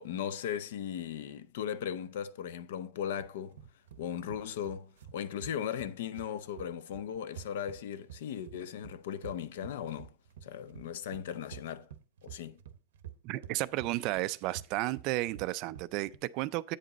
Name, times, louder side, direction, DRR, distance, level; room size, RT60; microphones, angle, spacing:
voice 1, 0.0-3.6 4.0-10.1 10.4-11.9 12.2-12.6, left 9 dB, 70° left, 0.6 m, -37 dB
sound 1, 3.2-16.2, right 9 dB, 85° right, 0.8 m, -49 dB
voice 2, 13.2-16.8, right 17 dB, 35° right, 0.3 m, -33 dB
8.7 x 5.1 x 4.0 m
supercardioid pair, 175°, 0 cm